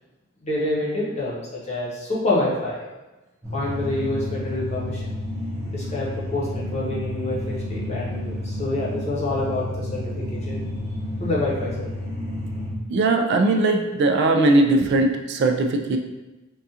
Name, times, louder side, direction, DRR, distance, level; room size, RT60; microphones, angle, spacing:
voice 1, 0.4-2.8 3.5-5.0 5.7-10.6 11.2-11.9, left 2 dB, 35° left, -5 dB, 0.8 m, -27 dB
sound 1, 3.4-12.7, left 1 dB, 15° right, 0.8 m, -30 dB
voice 2, 12.9-16.0, right 2 dB, 55° right, 3 dB, 0.3 m, -19 dB
3.6 x 2.3 x 2.8 m, 1.1 s
head